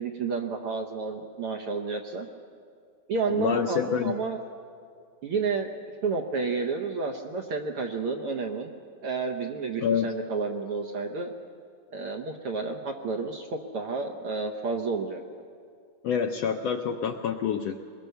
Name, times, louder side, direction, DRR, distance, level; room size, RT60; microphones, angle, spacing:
voice 1, 0.0-2.3 3.1-4.4 5.2-5.7 6.0-8.7 9.0-11.3 11.9-15.2, right 4 dB, 60° right, 2 dB, 1.6 m, -30 dB
voice 2, 3.3-4.2 9.8-10.1 16.0-17.8, left 7 dB, 75° left, 4 dB, 1.5 m, -27 dB
22.5 x 21.5 x 6.9 m, 2.3 s
omnidirectional pair, 3.6 m